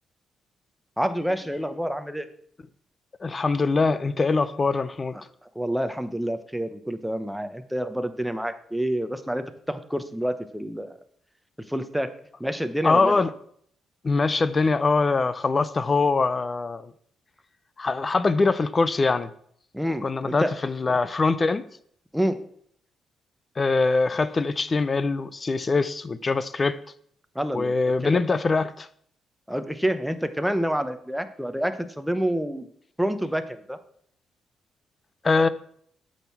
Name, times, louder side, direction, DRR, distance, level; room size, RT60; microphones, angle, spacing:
voice 1, 1.0-2.3 5.5-11.0 11.7-12.1 12.4-13.2 19.7-20.5 22.1-22.4 27.3-27.7 28.0-28.1 29.5-32.7 33.0-33.8, equal, ahead, 0.9 m, -28 dB
voice 2, 3.2-5.2 12.8-13.3 14.0-16.9 17.8-19.3 20.0-21.7 23.6-26.8 27.5-28.9 35.2-35.5, left 3 dB, 30° left, 0.6 m, -23 dB
8.8 x 6.5 x 5.9 m
cardioid pair, 100°, 0 cm